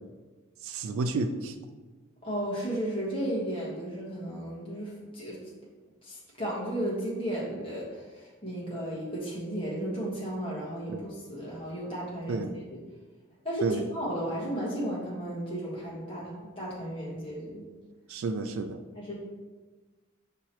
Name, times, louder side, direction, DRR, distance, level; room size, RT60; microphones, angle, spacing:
voice 1, 0.6-1.5 10.9-11.0 12.3-12.5 13.6-13.8 18.1-18.8, right 3 dB, 85° right, 8 dB, 0.3 m, -31 dB
voice 2, 2.2-5.4 6.0-12.8 13.4-17.6 18.9-19.2, right 1 dB, 25° left, -6 dB, 1.2 m, -34 dB
5.5 x 2.9 x 2.9 m, 1.3 s
head